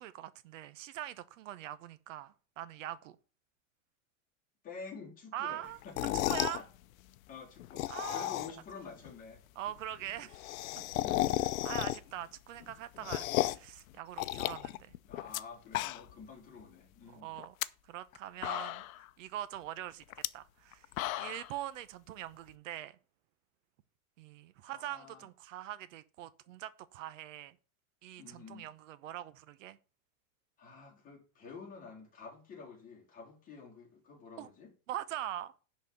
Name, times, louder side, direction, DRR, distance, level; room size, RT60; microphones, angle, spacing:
voice 1, 0.0-3.2 5.3-5.8 6.1-6.6 7.9-8.3 9.6-10.4 11.6-13.3 13.5-14.9 17.1-17.5 17.9-18.8 19.2-20.0 20.3-20.9 21.2-23.0 24.2-27.5 28.0-29.8 34.4-34.5 34.9-35.5, right 12 dB, 70° right, 0.9 m, -42 dB
voice 2, 4.6-6.7 7.3-9.4 10.2-10.3 11.0-11.5 11.8-11.9 12.2-12.3 13.1-13.2 15.0-17.4 24.6-25.3 28.2-28.7 30.6-34.7, left 5 dB, 20° left, 3.1 m, -49 dB
sound 1, 5.8-6.6 7.6-8.7 9.0-9.1 9.4-9.5 9.7-9.8 10.0-12.2 12.6-13.7 14.2-15.4 15.7-16.3 16.6-16.7 17.4-17.7 18.1-18.2 18.4-19.0 20.1-20.3 20.7-21.5, left 16 dB, 85° left, 0.7 m, -34 dB
10.5 x 4.3 x 7.7 m
supercardioid pair, 175°, 40 cm